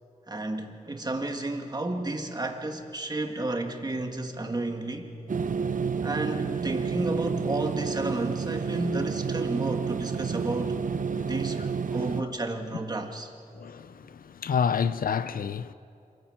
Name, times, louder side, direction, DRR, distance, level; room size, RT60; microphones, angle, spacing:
voice 1, 0.3-5.1 6.0-10.8 11.3-11.6 11.9-13.3, right 2 dB, 30° right, 1.9 m, -32 dB
sound 1, 5.3-12.2, right 6 dB, 70° right, 0.8 m, -30 dB
voice 2, 13.6-13.9 14.4-15.7, left 7 dB, 90° left, 0.6 m, -28 dB
26.5 x 15.0 x 8.9 m
wide cardioid pair, 115°, 14 cm